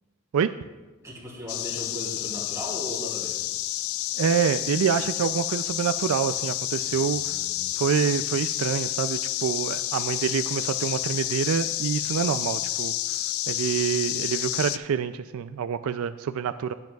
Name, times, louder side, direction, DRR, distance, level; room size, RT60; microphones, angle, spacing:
voice 1, 1.0-3.4 6.8-7.8, equal, 15° right, -4 dB, 2.8 m, -38 dB
sound 1, 1.5-14.8, left 14 dB, 75° left, 0.4 m, -30 dB
voice 2, 4.2-7.3 7.8-12.9 13.5-16.7, right 7 dB, 75° right, 11 dB, 0.3 m, -26 dB
18.0 x 7.6 x 2.3 m, 1.2 s
head